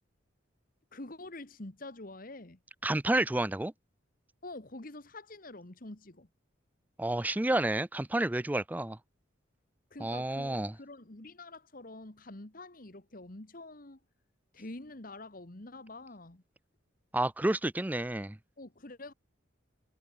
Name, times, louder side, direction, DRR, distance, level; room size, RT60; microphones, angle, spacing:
voice 1, 0.9-2.6 4.4-6.3 9.9-14.0 14.5-16.4 18.6-19.1, left 2 dB, 45° left, 1.7 m, -46 dB
voice 2, 2.8-3.7 7.0-9.0 10.0-10.7 17.1-18.4, right 1 dB, 10° right, 0.4 m, -30 dB
head